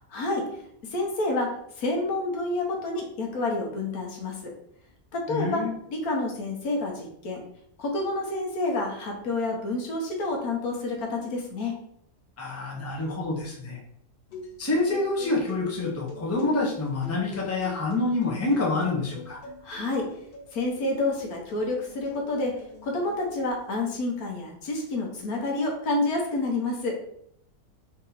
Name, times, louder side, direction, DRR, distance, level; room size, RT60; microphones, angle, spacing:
voice 1, 0.1-0.6 0.9-1.5 1.8-4.5 5.1-5.6 5.9-7.4 7.8-11.8 19.6-20.1 20.5-22.5 22.8-27.0, left 2 dB, 75° left, 0 dB, 1.4 m, -28 dB
voice 2, 5.3-5.7 12.4-13.8 14.6-19.4, left 2 dB, 15° left, -3 dB, 0.7 m, -27 dB
sound 1, 14.3-23.8, left 2 dB, 55° left, 0.7 m, -45 dB
4.0 x 2.8 x 4.0 m, 0.72 s
omnidirectional pair, 1.6 m